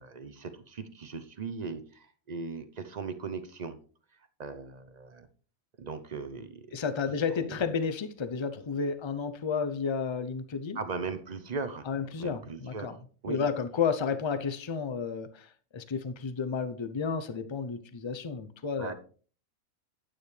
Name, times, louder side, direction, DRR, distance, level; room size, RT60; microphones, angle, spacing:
voice 1, 0.0-3.8 4.4-5.3 5.8-6.7 7.4-7.6 10.7-11.9 12.2-12.9 13.2-13.4 18.8-18.9, right 4 dB, 40° right, 0.6 m, -38 dB
voice 2, 6.7-10.8 11.9-13.0 13.3-18.9, left 5 dB, 35° left, 0.4 m, -32 dB
9.6 x 8.7 x 3.2 m
omnidirectional pair, 1.4 m